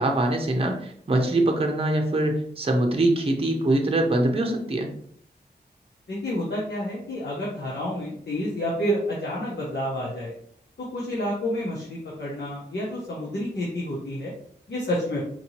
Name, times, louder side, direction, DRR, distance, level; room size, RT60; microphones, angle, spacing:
voice 1, 0.0-4.9, right 1 dB, 35° right, 2 dB, 0.7 m, -23 dB
voice 2, 6.1-10.3 10.8-14.3 14.7-15.2, equal, 80° left, -5 dB, 1.0 m, -29 dB
4.5 x 2.8 x 2.9 m, 0.63 s
wide cardioid pair, 70°, 18 cm